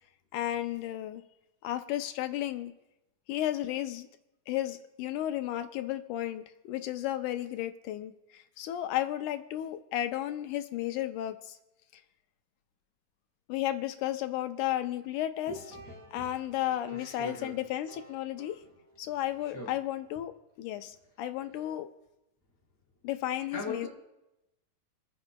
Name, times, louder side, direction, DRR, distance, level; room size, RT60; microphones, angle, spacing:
voice 1, 0.3-1.2 1.6-2.7 3.3-4.1 4.5-11.6 11.9-12.0 13.5-15.6 16.1-18.6 19.0-20.3 20.6-21.9 23.0-23.9, left 13 dB, 80° left, 9 dB, 1.9 m, -33 dB
voice 2, 15.4-16.3 16.9-17.5 19.5-19.7 23.5-23.9, left 2 dB, 15° left, -2 dB, 0.6 m, -40 dB
sound 1, 15.4-19.3, right 2 dB, 40° right, 1.2 m, -53 dB
28.0 x 9.6 x 2.2 m, 0.94 s
omnidirectional pair, 3.9 m